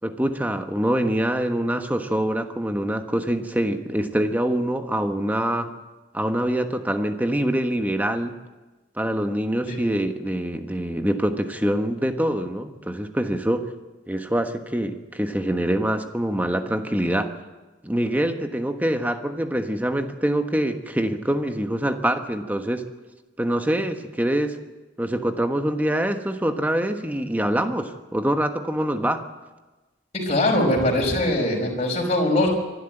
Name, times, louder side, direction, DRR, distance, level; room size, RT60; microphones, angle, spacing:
voice 1, 0.0-5.7 6.1-8.3 9.0-13.6 14.1-17.3 17.8-22.8 23.4-24.6 25.0-29.2, right 1 dB, 10° right, 6 dB, 1.3 m, -25 dB
voice 2, 30.1-32.5, left 1 dB, 35° left, 0 dB, 5.4 m, -22 dB
25.0 x 12.5 x 9.0 m, 1.2 s
head